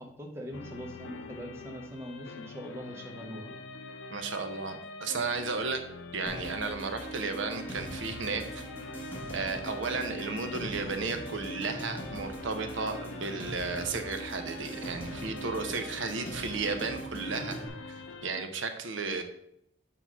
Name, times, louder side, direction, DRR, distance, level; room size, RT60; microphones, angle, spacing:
voice 1, 0.0-3.6, equal, 15° right, 1 dB, 0.8 m, -42 dB
sound 1, 0.5-18.4, left 3 dB, 70° left, 0.5 m, -45 dB
voice 2, 4.1-5.8 6.1-8.6 9.3-17.6 17.9-19.2, right 4 dB, 75° right, 7 dB, 0.8 m, -34 dB
sound 2, 6.3-17.7, right 1 dB, 10° left, 1.5 m, -41 dB
5.7 x 3.9 x 6.0 m, 0.74 s
head